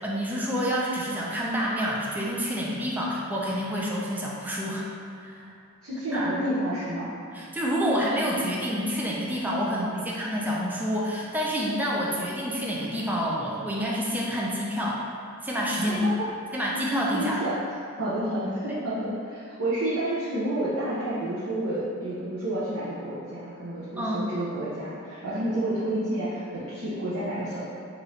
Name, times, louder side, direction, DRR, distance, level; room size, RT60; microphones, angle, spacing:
voice 1, 0.0-4.9 5.2-5.4 6.1-6.4 7.3-15.0 15.4-16.0 16.5-17.4 18.7-18.8 24.0-24.2, equal, 10° right, -5 dB, 0.4 m, -28 dB
voice 2, 5.8-7.1 9.6-10.1 15.8-16.3 17.1-17.5 18.0-27.7, right 1 dB, 85° right, -10 dB, 0.8 m, -30 dB
4.6 x 2.6 x 3.1 m, 2.5 s
head